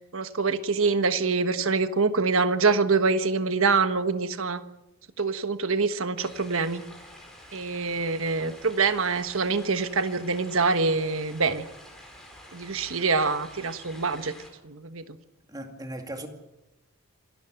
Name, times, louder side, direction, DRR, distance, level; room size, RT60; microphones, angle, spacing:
voice 1, 0.0-4.6 5.2-6.8 7.5-11.7 12.5-14.3 14.6-15.0, right 4 dB, 65° right, 1.3 m, -25 dB
sound 1, 6.2-14.5, left 1 dB, ahead, 5.2 m, -48 dB
voice 2, 15.5-16.3, right 1 dB, 15° right, 2.3 m, -37 dB
27.0 x 13.0 x 8.9 m
head